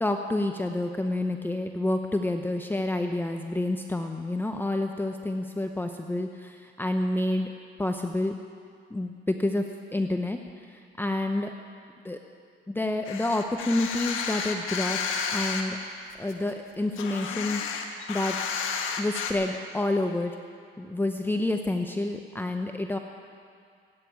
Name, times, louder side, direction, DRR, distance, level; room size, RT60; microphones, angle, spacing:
voice 1, 0.0-7.5 7.8-8.3 8.9-9.6 9.9-11.5 12.0-12.2 12.7-15.0 15.3-15.8 16.2-18.4 19.0-20.4 20.8-23.0, left 2 dB, 10° left, 4 dB, 0.8 m, -28 dB
sound 1, 13.1-15.6 16.1-19.3, left 6 dB, 80° left, 1.5 m, -31 dB
16.0 x 9.3 x 9.2 m, 2.2 s
cardioid pair, 90°, 20 cm